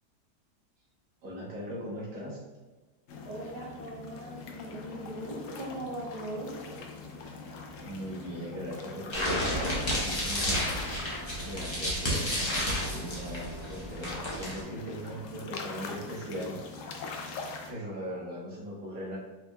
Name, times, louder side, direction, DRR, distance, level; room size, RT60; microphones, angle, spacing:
voice 1, 1.2-2.4 7.8-10.6 11.4-16.6 17.7-19.2, equal, 75° right, -6 dB, 1.9 m, -39 dB
sound 1, 3.1-17.7, left 4 dB, 70° left, 0.8 m, -43 dB
voice 2, 3.2-6.5, right 1 dB, 30° right, -5 dB, 1.1 m, -39 dB
sound 2, 9.1-14.6, equal, 25° left, 0.7 m, -31 dB
4.8 x 3.6 x 2.3 m, 1.2 s
omnidirectional pair, 1.8 m